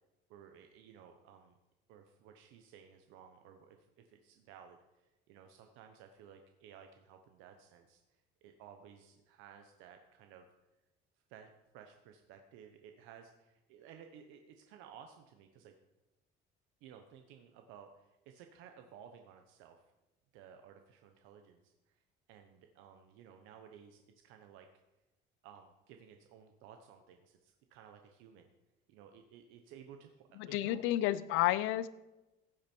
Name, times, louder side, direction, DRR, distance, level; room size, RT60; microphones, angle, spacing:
voice 1, 0.3-1.5 1.9-10.5 11.3-15.7 16.8-19.8 20.3-22.0 22.3-24.7 25.4-28.5 28.9-30.8, right 8 dB, 90° right, 5 dB, 1.0 m, -56 dB
voice 2, 30.4-31.9, left 14 dB, 90° left, 16 dB, 0.7 m, -31 dB
15.5 x 8.8 x 4.6 m, 1.0 s
cardioid pair, 180°, 20 cm